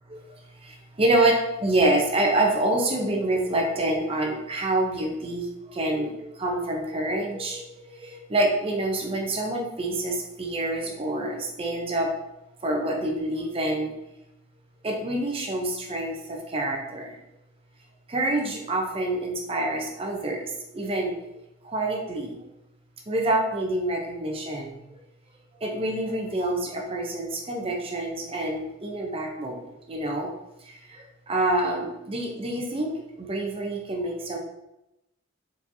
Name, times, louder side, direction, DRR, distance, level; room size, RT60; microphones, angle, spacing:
voice 1, 0.6-12.1 12.6-13.9 14.8-17.2 18.1-21.1 21.6-22.4 23.1-24.8 25.6-30.3 30.6-34.4, right 1 dB, 25° right, 1 dB, 0.6 m, -27 dB
4.8 x 4.2 x 2.7 m, 0.89 s
head